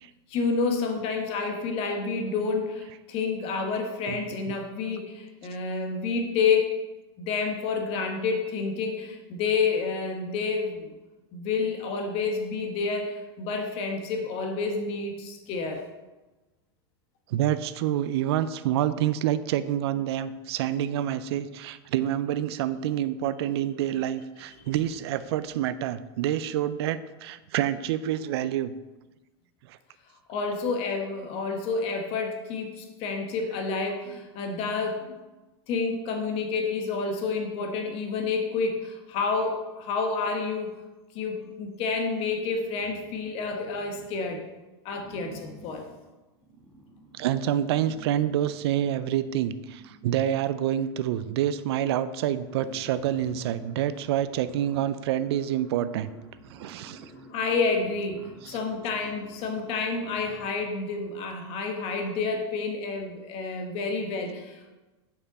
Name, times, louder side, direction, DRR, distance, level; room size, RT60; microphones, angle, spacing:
voice 1, 0.3-6.7 7.2-10.9 11.3-15.8 30.3-35.2 35.7-40.7 41.1-44.4 44.8-45.9 57.3-64.7, left 4 dB, 45° left, 3 dB, 1.2 m, -29 dB
voice 2, 17.3-28.7 29.7-29.8 47.1-56.1 56.5-57.1 58.4-58.6, right 11 dB, 70° right, 14 dB, 0.4 m, -27 dB
sound 1, 42.6-44.5 44.9-50.6 51.5-51.6 51.9-60.8, right 1 dB, 15° right, 1.4 m, -51 dB
6.9 x 5.6 x 4.1 m, 1.1 s
supercardioid pair, 130°, 14 cm